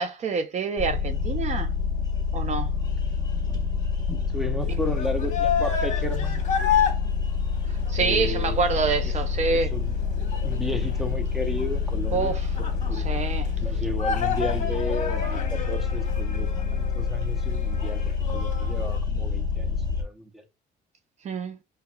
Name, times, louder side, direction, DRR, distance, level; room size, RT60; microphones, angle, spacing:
voice 1, 0.0-1.7 2.3-2.8 7.6-9.8 12.1-12.5 12.9-13.8 21.2-21.6, right 5 dB, 45° right, 0.5 m, -27 dB
sound 1, 0.8-20.0, left 6 dB, 25° left, 1.1 m, -27 dB
voice 2, 4.3-6.4 8.0-8.6 9.5-9.9 10.4-12.3 12.9-13.1 13.6-18.0 18.3-20.4, left 1 dB, ahead, 0.7 m, -33 dB
sound 2, 4.6-19.0, left 7 dB, 50° left, 1.2 m, -31 dB
5.3 x 2.2 x 2.2 m
cardioid pair, 110°, 17 cm